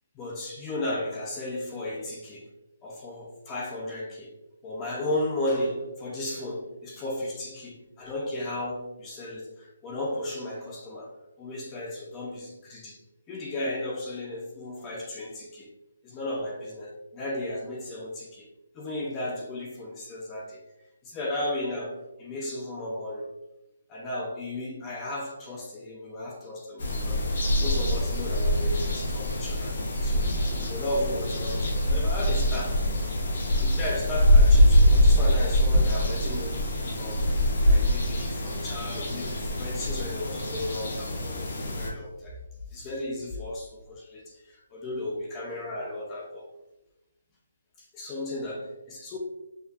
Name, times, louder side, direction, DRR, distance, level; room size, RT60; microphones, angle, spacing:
voice 1, 0.2-2.5 2.8-4.4 4.6-11.1 11.4-13.0 13.3-15.7 16.0-18.5 18.7-20.6 21.0-23.3 23.9-32.8 33.6-42.4 42.7-46.5 47.8-49.2, left 1 dB, 15° left, -1 dB, 0.4 m, -35 dB
sound 1, 26.8-41.9, equal, 45° left, 1.0 m, -24 dB
5.4 x 2.3 x 2.8 m, 0.95 s
hypercardioid pair, 175°, 0 cm